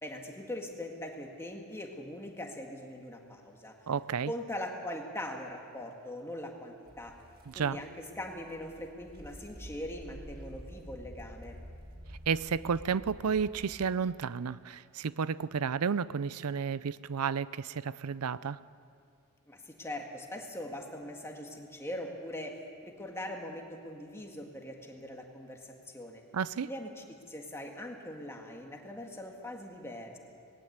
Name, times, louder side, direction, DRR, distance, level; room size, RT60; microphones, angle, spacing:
voice 1, 0.0-3.7 4.3-7.1 7.5-11.6 19.5-22.6 22.8-26.2 26.7-30.2, left 1 dB, 10° left, 2 dB, 1.8 m, -41 dB
voice 2, 3.9-4.3 7.5-7.8 12.3-18.6 26.3-26.7, right 6 dB, 80° right, 18 dB, 0.5 m, -32 dB
sound 1, 6.9-13.9, equal, 45° right, 1.9 m, -49 dB
19.0 x 18.0 x 8.1 m, 2.3 s
head